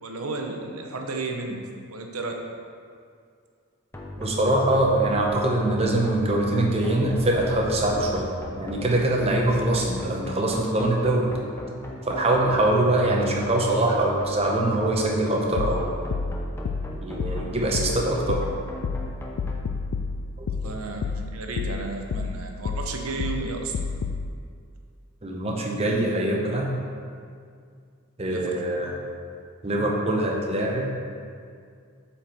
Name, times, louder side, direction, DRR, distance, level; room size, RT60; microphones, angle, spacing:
voice 1, 0.0-1.6 1.9-2.3 20.5-23.7 28.2-28.5, right 3 dB, 75° right, 3 dB, 0.8 m, -33 dB
sound 1, 3.9-19.5, equal, 10° left, 0.6 m, -36 dB
voice 2, 4.2-8.3 8.6-11.3 12.0-16.2 17.0-18.4 20.4-20.7 25.2-26.7 28.2-29.0 29.6-30.9, right 1 dB, 25° right, -1 dB, 0.8 m, -23 dB
sound 2, 15.6-24.3, left 4 dB, 70° left, 0.3 m, -30 dB
7.6 x 4.4 x 4.4 m, 2.2 s
head